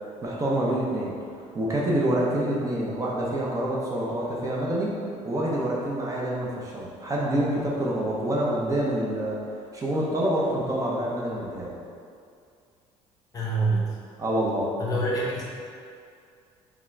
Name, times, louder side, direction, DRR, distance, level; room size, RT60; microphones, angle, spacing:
voice 1, 0.2-5.0 5.2-9.5 9.7-11.7 14.2-14.7, right 1 dB, 25° right, -5 dB, 0.7 m, -27 dB
voice 2, 13.3-14.0 14.8-15.4, right 2 dB, 30° left, -5 dB, 1.0 m, -26 dB
3.6 x 3.6 x 3.3 m, 2.4 s
cardioid pair, 110°, 12 cm